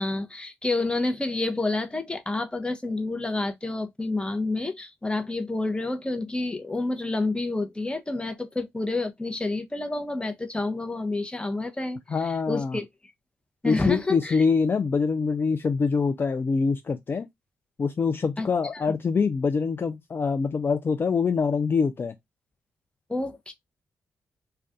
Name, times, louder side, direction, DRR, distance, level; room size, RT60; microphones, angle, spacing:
voice 1, 0.0-12.9 13.6-14.4 18.4-18.9 23.1-23.5, left 2 dB, 15° left, 0.8 m, -29 dB
voice 2, 12.1-12.8 13.6-17.3 17.8-22.1, left 5 dB, 40° left, 0.4 m, -24 dB
2.5 x 2.3 x 3.4 m
supercardioid pair, 45°, 6 cm